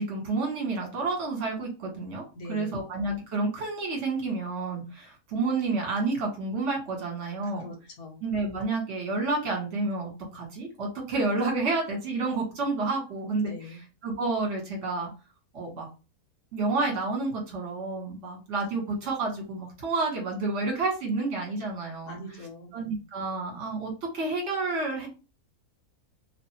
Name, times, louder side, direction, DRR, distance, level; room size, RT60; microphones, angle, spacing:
voice 1, 0.0-2.2 2.5-7.7 8.2-13.5 14.0-15.1 15.5-15.9 16.5-22.2 22.7-25.1, right 3 dB, 55° right, 0 dB, 1.5 m, -30 dB
voice 2, 2.3-2.8 7.4-8.2 13.4-13.8 22.1-22.8, left 2 dB, 80° left, 1 dB, 1.4 m, -42 dB
3.0 x 2.4 x 2.8 m, 0.30 s
omnidirectional pair, 1.6 m